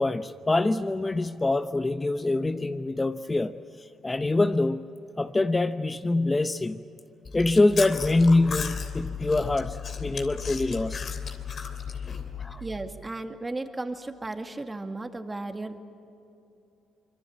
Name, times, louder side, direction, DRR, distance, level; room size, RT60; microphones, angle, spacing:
voice 1, 0.0-4.9 5.2-6.8 7.3-11.1 12.4-12.6, left 2 dB, 25° left, 10 dB, 0.9 m, -25 dB
Chewing mastication, 7.2-12.6, left 6 dB, 55° left, 3.1 m, -35 dB
voice 2, 12.6-15.8, right 2 dB, 20° right, 6 dB, 2.3 m, -35 dB
25.5 x 22.5 x 8.7 m, 2.9 s
supercardioid pair, 60°, 0 cm